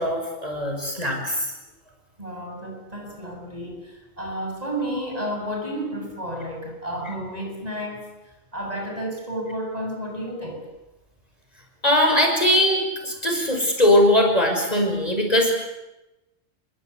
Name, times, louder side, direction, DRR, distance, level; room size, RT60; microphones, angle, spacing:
voice 1, 0.0-1.5 11.8-15.5, left 1 dB, 35° left, 3 dB, 6.0 m, -20 dB
voice 2, 2.2-8.1 8.5-10.7, equal, 35° right, 2 dB, 7.8 m, -31 dB
29.0 x 24.0 x 8.4 m, 0.98 s
omnidirectional pair, 1.2 m